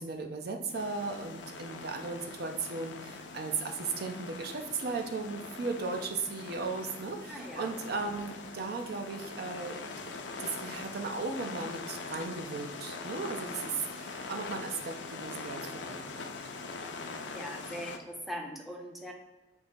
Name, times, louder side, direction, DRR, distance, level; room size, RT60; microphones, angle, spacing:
voice 1, 0.0-9.9 10.4-16.2 16.9-17.1, right 4 dB, 60° right, 4 dB, 0.5 m, -36 dB
sound 1, 0.7-18.0, left 4 dB, 80° left, 0.5 m, -42 dB
voice 2, 7.3-7.7 17.3-19.1, equal, ahead, 1 dB, 0.5 m, -41 dB
3.7 x 3.0 x 4.2 m, 1.1 s
head